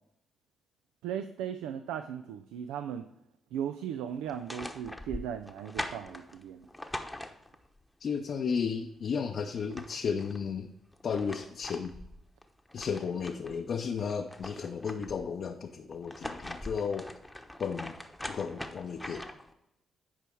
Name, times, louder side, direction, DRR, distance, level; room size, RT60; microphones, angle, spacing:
voice 1, 1.0-3.1 3.5-6.7, right 9 dB, 85° right, 9 dB, 0.3 m, -37 dB
sound 1, 4.2-7.8 9.2-9.3 9.6-10.4 10.9-13.6 14.0-15.3 15.9-19.5, left 1 dB, 5° left, 0.9 m, -42 dB
voice 2, 8.0-10.7 11.0-11.9 12.7-17.1 17.6-18.0 18.3-19.3, left 6 dB, 60° left, 3 dB, 0.6 m, -33 dB
10.0 x 4.8 x 4.5 m, 0.82 s
supercardioid pair, 50°, 0 cm